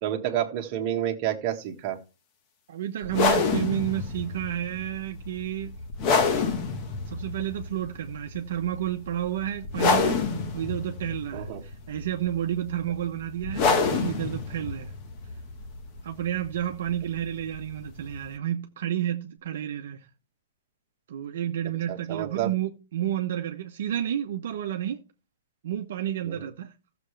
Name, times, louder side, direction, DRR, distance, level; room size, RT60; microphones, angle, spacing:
voice 1, 0.0-2.0 11.3-11.6 21.9-22.5 26.2-26.5, right 11 dB, 25° right, 1.6 m, -29 dB
voice 2, 2.7-5.7 7.1-10.2 10.5-14.9 16.0-20.1 21.1-25.0 25.6-26.7, right 11 dB, 50° right, 1.0 m, -31 dB
sound 1, 3.0-18.4, left 5 dB, 25° left, 1.2 m, -29 dB
15.0 x 7.0 x 3.3 m
hypercardioid pair, 175°, 0 cm